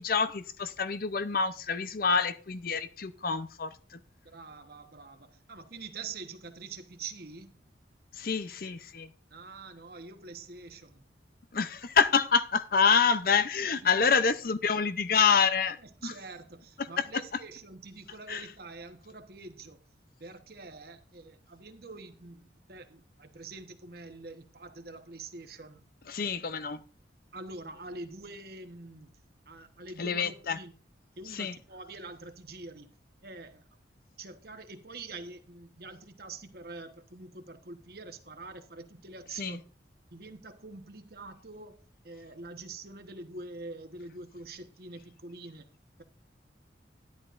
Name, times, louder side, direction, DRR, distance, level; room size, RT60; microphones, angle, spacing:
voice 1, 0.0-4.0 8.2-9.1 11.5-15.8 16.0-16.1 18.3-18.4 26.1-26.8 30.0-30.6 31.3-31.5 39.4-39.6, left 6 dB, 50° left, 0.6 m, -27 dB
voice 2, 4.2-7.6 9.3-11.0 13.8-14.1 15.8-19.8 20.2-25.8 27.3-30.7 31.2-32.9 33.2-33.6 34.2-39.6 40.1-45.7, right 3 dB, 55° right, 1.2 m, -45 dB
13.0 x 11.0 x 2.6 m
head